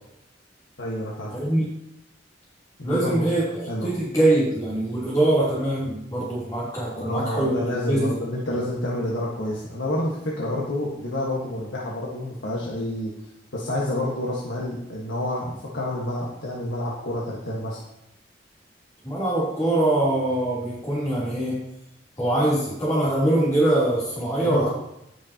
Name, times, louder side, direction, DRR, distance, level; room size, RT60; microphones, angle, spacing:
voice 1, 0.8-1.4 2.8-3.3 3.7-3.9 7.0-13.1 13.5-17.8 24.4-24.7, left 1 dB, 75° left, -4 dB, 1.5 m, -28 dB
voice 2, 1.3-1.6 2.8-8.1 19.0-21.6 22.2-24.7, right 1 dB, 20° left, -9 dB, 3.4 m, -23 dB
18.0 x 6.5 x 2.9 m, 0.83 s
head